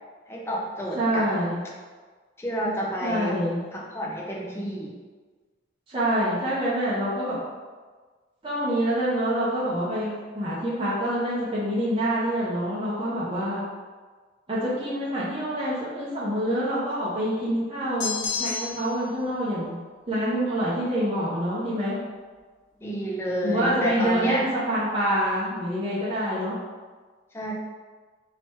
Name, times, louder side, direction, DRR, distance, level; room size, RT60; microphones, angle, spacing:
voice 1, 0.3-1.3 2.4-3.4 3.7-5.0 22.8-24.5 27.3-27.5, equal, 15° left, -3 dB, 0.5 m, -30 dB
voice 2, 0.9-1.6 3.0-3.6 5.9-7.4 8.4-13.6 14.5-19.8 20.1-22.0 23.4-26.5, equal, 25° right, -10 dB, 0.7 m, -26 dB
sound 1, 18.0-19.0, left 5 dB, 75° left, 0.8 m, -30 dB
2.9 x 2.9 x 4.4 m, 1.4 s
head